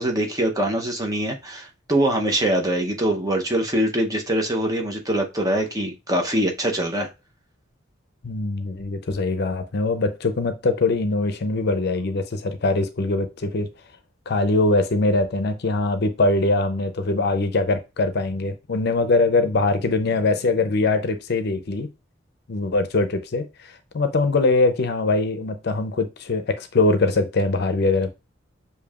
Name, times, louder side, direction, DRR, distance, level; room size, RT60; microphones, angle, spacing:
voice 1, 0.0-7.1, right 1 dB, 20° right, 0.7 m, -23 dB
voice 2, 8.2-13.7 14.3-21.9 22.5-28.1, left 3 dB, 55° left, 0.6 m, -22 dB
6.7 x 2.7 x 2.4 m
head